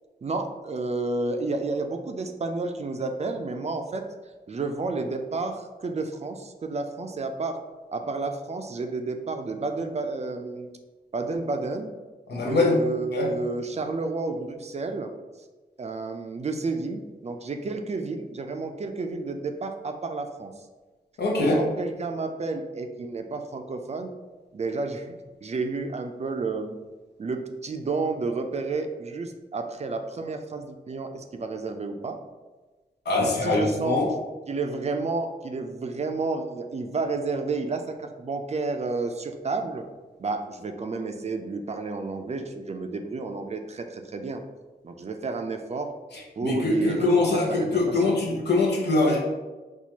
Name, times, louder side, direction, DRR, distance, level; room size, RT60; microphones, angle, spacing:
voice 1, 0.2-4.0 4.5-7.6 7.9-10.7 11.1-11.9 12.3-15.1 15.8-20.5 21.4-24.1 24.5-26.8 27.2-32.2 33.2-34.0 34.5-39.9 40.2-44.4 44.8-45.9 46.4-47.2 47.5-48.2, right 3 dB, 40° right, 5 dB, 0.4 m, -31 dB
voice 2, 12.3-12.8 13.1-13.3 21.2-21.6 33.1-34.0 46.4-49.2, left 2 dB, 80° left, -2 dB, 0.8 m, -23 dB
4.3 x 2.4 x 2.8 m, 1.2 s
cardioid pair, 60°, 17 cm